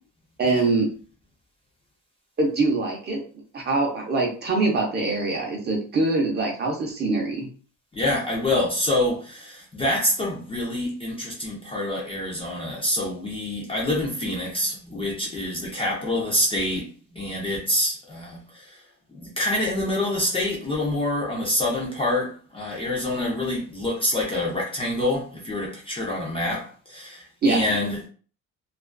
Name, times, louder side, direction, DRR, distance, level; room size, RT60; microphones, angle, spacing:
voice 1, 0.4-0.9 2.4-3.2 3.5-7.5 27.4-27.6, right 3 dB, 30° right, 0.6 m, -23 dB
voice 2, 7.9-16.9 17.1-18.4 19.2-28.1, left 1 dB, 15° left, 0.5 m, -26 dB
2.4 x 2.3 x 2.2 m
cardioid pair, 145°, 34 cm